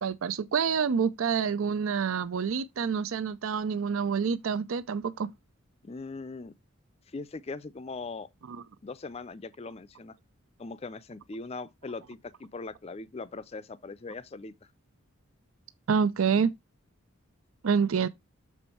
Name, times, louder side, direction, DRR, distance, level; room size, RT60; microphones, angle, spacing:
voice 1, 0.0-5.3 8.5-8.6 15.9-16.5 17.6-18.1, right 6 dB, 75° right, 0.5 m, -27 dB
voice 2, 5.8-6.5 7.1-8.3 8.8-10.2 10.6-14.5, left 3 dB, 30° left, 0.4 m, -40 dB
7.1 x 4.2 x 4.3 m
head